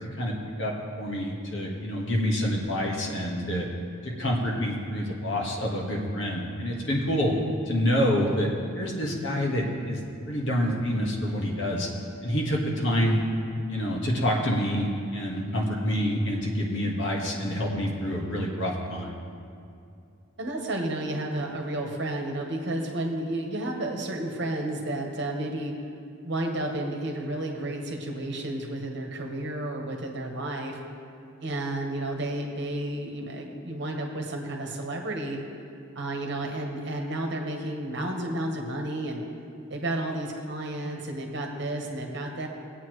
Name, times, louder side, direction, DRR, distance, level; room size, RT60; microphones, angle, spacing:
voice 1, 0.0-3.7 4.0-7.3 7.7-8.5 8.7-10.0 10.3-11.9 12.2-13.2 13.7-19.1, equal, 60° left, -2 dB, 1.5 m, -27 dB
voice 2, 20.4-25.7 26.2-30.8 31.4-35.4 35.9-39.2 39.7-42.5, right 1 dB, 55° right, 1 dB, 1.2 m, -31 dB
19.0 x 8.4 x 3.2 m, 2.5 s
head